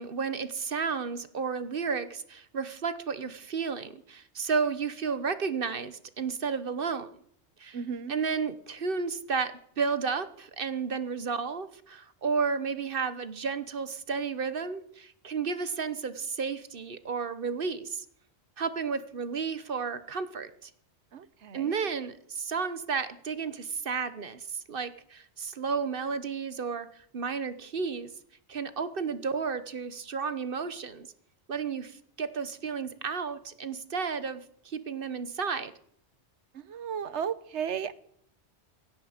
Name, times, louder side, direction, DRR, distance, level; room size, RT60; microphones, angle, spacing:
voice 1, 0.0-7.1 7.6-7.8 8.1-18.0 18.6-20.7 21.5-28.1 28.5-31.1 31.5-35.7, right 5 dB, 55° right, 13 dB, 1.2 m, -32 dB
voice 2, 7.7-8.1 21.1-21.8 36.7-37.9, right 7 dB, 80° right, 16 dB, 1.2 m, -34 dB
17.0 x 16.5 x 5.1 m, 0.66 s
omnidirectional pair, 1.2 m